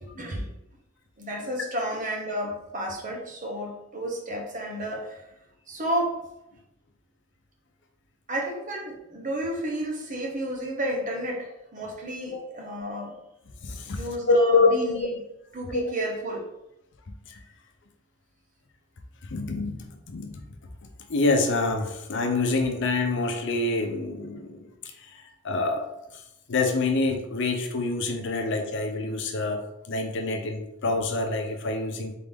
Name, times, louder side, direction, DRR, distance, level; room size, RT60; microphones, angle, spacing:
voice 1, 0.0-0.5 1.2-5.2 5.7-6.2 8.3-13.2 13.9-14.9 15.5-16.5, right 1 dB, 40° right, 0 dB, 0.9 m, -31 dB
voice 2, 13.6-15.1 15.7-15.8 17.3-17.4 19.3-20.3 21.1-25.8 26.1-26.2 26.5-32.2, left 3 dB, 60° left, 5 dB, 0.6 m, -26 dB
3.8 x 3.7 x 3.5 m, 0.85 s
head